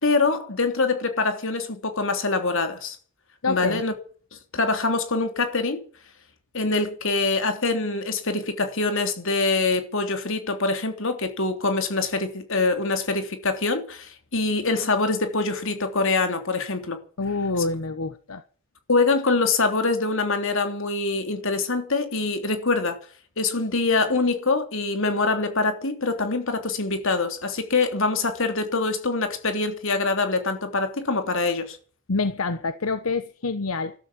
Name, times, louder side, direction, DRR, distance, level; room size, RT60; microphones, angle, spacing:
voice 1, 0.0-3.0 3.5-3.9 4.5-5.8 6.5-17.0 18.9-23.0 23.4-31.8, left 3 dB, 65° left, 3.2 m, -24 dB
voice 2, 3.4-3.8 17.2-18.4 32.1-33.9, left 3 dB, 85° left, 1.1 m, -26 dB
13.0 x 12.5 x 8.5 m
head